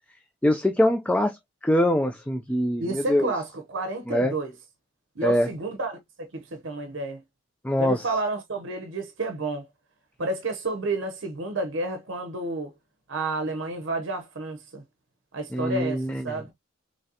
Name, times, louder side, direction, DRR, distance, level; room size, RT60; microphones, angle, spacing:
voice 1, 0.4-3.3 4.1-4.3 5.2-5.5 7.6-8.1 15.5-16.4, left 1 dB, 5° left, 0.3 m, -23 dB
voice 2, 2.8-4.5 5.2-7.2 7.8-9.7 10.2-12.7 13.1-14.8 15.3-16.5, right 2 dB, 60° right, 0.7 m, -30 dB
3.9 x 3.1 x 2.7 m
head